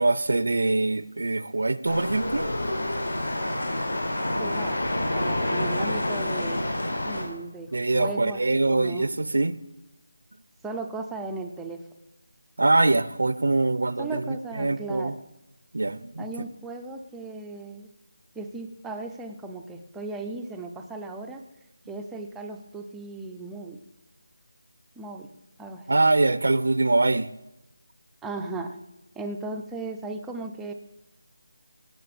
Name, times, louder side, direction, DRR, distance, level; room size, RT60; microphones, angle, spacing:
voice 1, 0.0-2.5 7.7-9.6 12.6-14.2 14.6-15.1 15.7-16.3 25.9-27.3, right 2 dB, 65° right, 16 dB, 0.6 m, -23 dB
sound 1, 1.9-7.2, left 1 dB, 85° left, 4.5 m, -28 dB
voice 2, 4.4-4.8 5.1-6.6 7.1-8.4 8.7-9.1 10.6-11.8 14.0-15.2 16.2-17.9 18.4-21.4 21.9-23.8 25.0-25.3 25.6-25.9 28.2-28.8 29.2-30.7, right 3 dB, 5° right, 4 dB, 0.5 m, -36 dB
17.0 x 6.7 x 6.8 m, 0.92 s
figure-of-eight pair, 175°, 0 cm